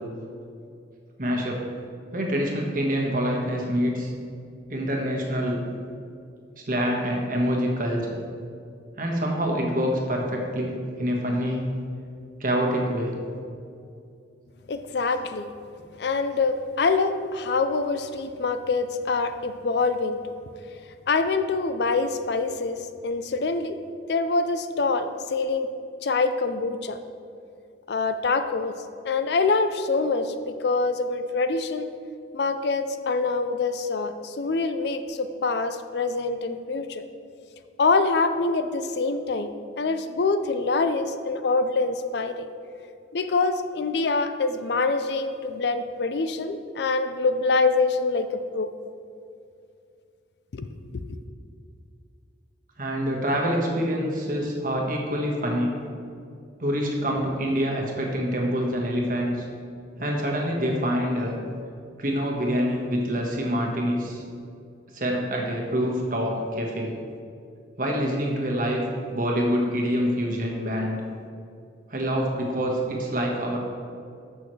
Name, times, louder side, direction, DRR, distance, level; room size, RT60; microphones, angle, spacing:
voice 1, 1.2-1.6 2.1-4.1 4.7-5.6 6.6-8.2 9.0-11.7 12.4-13.1 52.8-55.7 56.6-59.4 60.0-61.4 62.0-64.2 64.9-67.0 67.8-68.8 69.1-71.0 71.9-73.6, equal, 50° right, -1 dB, 1.5 m, -26 dB
voice 2, 14.7-15.5 16.0-20.3 21.1-22.8 23.0-23.8 24.1-25.7 26.0-27.0 27.9-28.8 29.0-31.9 32.3-37.0 37.8-42.5 43.1-48.7 50.5-51.2, left 3 dB, 65° left, 10 dB, 0.5 m, -25 dB
13.5 x 6.2 x 3.2 m, 2.5 s
head